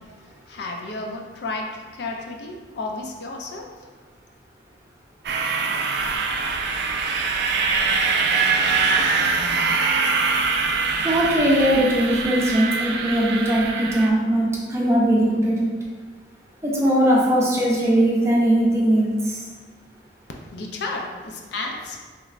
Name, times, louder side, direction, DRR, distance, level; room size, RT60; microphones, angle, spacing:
voice 1, 0.5-1.7 1.9-3.7 20.5-22.0, left 3 dB, 65° left, 1 dB, 0.4 m, -32 dB
sound 1, 5.2-14.1, right 4 dB, 65° right, 0.3 m, -23 dB
voice 2, 11.0-15.7 16.6-19.4, right 1 dB, 15° right, -4 dB, 0.6 m, -20 dB
3.2 x 3.1 x 2.4 m, 1.4 s
head